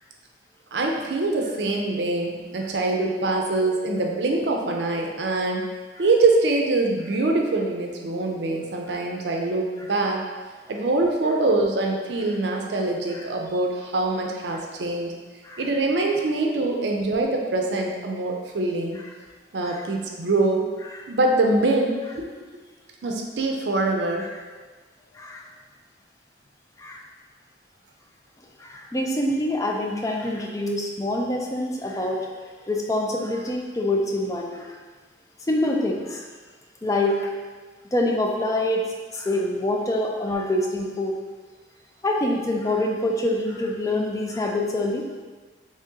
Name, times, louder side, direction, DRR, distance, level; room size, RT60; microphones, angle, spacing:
voice 1, 0.7-5.7 6.0-10.2 10.7-15.1 15.6-19.0 19.5-20.6 21.1-22.3 23.0-24.3, right 2 dB, 75° right, 1 dB, 0.5 m, -24 dB
voice 2, 28.6-32.2 32.7-34.8 35.5-36.3 36.8-37.3 37.9-38.8 39.1-41.1 42.0-45.1, left 1 dB, 20° left, 0 dB, 0.3 m, -25 dB
3.0 x 2.8 x 3.6 m, 1.4 s
head